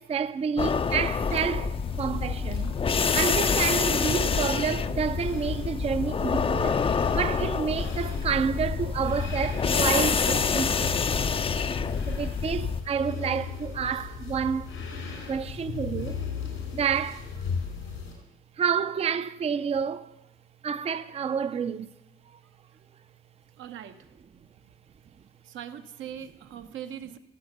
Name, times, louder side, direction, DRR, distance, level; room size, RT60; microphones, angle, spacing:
voice 1, 0.0-2.7 3.1-6.8 7.1-11.1 12.1-14.7 15.3-16.2 16.7-17.3 18.6-20.1 20.6-21.9, right 7 dB, 30° right, 0.4 m, -29 dB
sound 1, 0.6-12.8, left 5 dB, 30° left, 0.5 m, -27 dB
sound 2, 1.3-18.1, left 6 dB, 90° left, 3.8 m, -37 dB
voice 2, 22.4-22.8 23.6-24.1 25.4-27.2, right 9 dB, 75° right, 0.9 m, -41 dB
14.0 x 7.0 x 6.6 m
cardioid pair, 90°, 20 cm